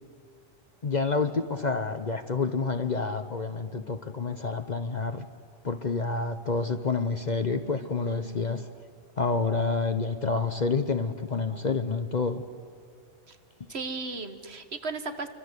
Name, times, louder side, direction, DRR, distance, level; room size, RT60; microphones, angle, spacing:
voice 1, 0.8-5.2 5.6-8.7 9.2-12.4, left 4 dB, 40° left, 8 dB, 1.0 m, -28 dB
voice 2, 7.8-8.4 13.3-13.4 13.7-15.3, right 3 dB, 60° right, 9 dB, 1.9 m, -36 dB
29.0 x 24.5 x 8.2 m, 2.2 s
omnidirectional pair, 1.2 m